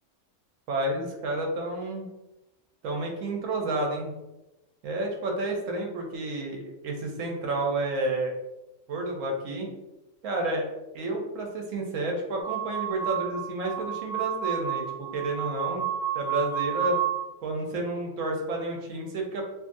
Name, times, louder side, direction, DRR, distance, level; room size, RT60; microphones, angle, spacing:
voice 1, 0.7-2.1 2.8-4.1 4.8-8.3 8.9-9.7 10.2-10.7 10.9-15.9 16.1-17.0 17.4-19.4, right 2 dB, 85° right, 1 dB, 1.0 m, -30 dB
sound 1, 12.4-17.2, right 10 dB, 25° right, 0.9 m, -30 dB
2.6 x 2.4 x 2.5 m, 1.0 s
omnidirectional pair, 1.3 m